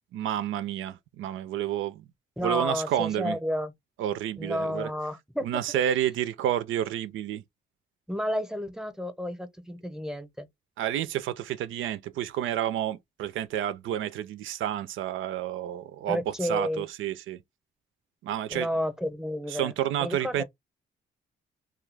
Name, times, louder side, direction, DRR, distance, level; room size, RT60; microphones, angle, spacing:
voice 1, 0.1-2.0 2.4-3.4 4.0-4.9 5.4-7.4 10.8-17.4 18.2-18.7 19.5-20.4, right 11 dB, 90° right, 0.4 m, -30 dB
voice 2, 2.4-3.7 4.4-5.6 8.1-10.5 16.1-16.8 18.5-19.7 20.0-20.4, equal, 5° right, 0.7 m, -31 dB
2.3 x 2.2 x 3.2 m
cardioid pair, 75°, 20 cm